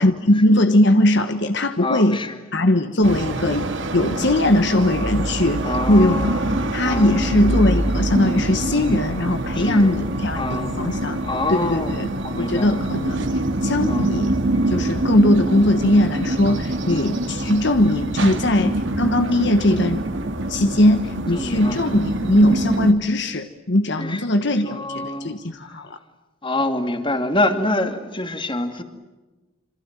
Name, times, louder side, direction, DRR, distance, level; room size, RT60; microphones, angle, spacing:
voice 1, 0.0-2.2 2.5-3.7 3.9-6.4 6.7-11.2 11.5-12.1 12.4-14.3 14.7-20.1 20.5-26.0, left 1 dB, 55° left, 1.3 m, -20 dB
voice 2, 1.8-2.4 5.6-7.3 9.6-10.0 10.3-11.0 11.2-12.7 13.9-14.1 14.7-15.0 16.9-17.2 18.6-18.7 21.3-21.8 24.0-24.2 24.7-25.8 26.4-28.8, left 2 dB, 25° left, 2.5 m, -26 dB
sound 1, 3.0-22.9, right 1 dB, 60° right, 2.4 m, -25 dB
27.5 x 27.0 x 7.5 m
head